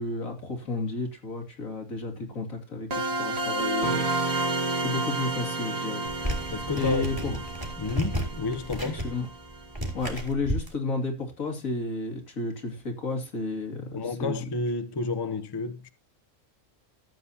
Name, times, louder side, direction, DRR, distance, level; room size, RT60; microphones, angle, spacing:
voice 1, 0.0-6.3 6.7-7.3 8.9-9.3 9.9-14.4, left 2 dB, 85° left, 3.0 m, -32 dB
sound 1, 2.9-9.6, right 2 dB, 55° right, 2.0 m, -30 dB
sound 2, 6.1-10.7, equal, 15° right, 2.9 m, -33 dB
voice 2, 6.5-7.4 7.8-9.0 13.9-15.9, left 3 dB, 25° left, 0.6 m, -31 dB
14.0 x 8.0 x 2.8 m
omnidirectional pair, 1.4 m